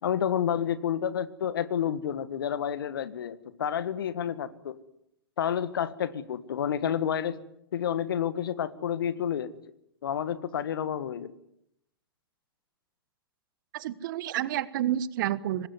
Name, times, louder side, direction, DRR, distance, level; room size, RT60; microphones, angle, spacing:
voice 1, 0.0-4.8 5.4-7.4 7.7-9.5 10.0-11.3, left 9 dB, 70° left, 15 dB, 1.8 m, -30 dB
voice 2, 13.7-15.7, right 12 dB, 55° right, 17 dB, 1.4 m, -29 dB
25.0 x 20.0 x 9.6 m, 0.78 s
figure-of-eight pair, 100°, 12 cm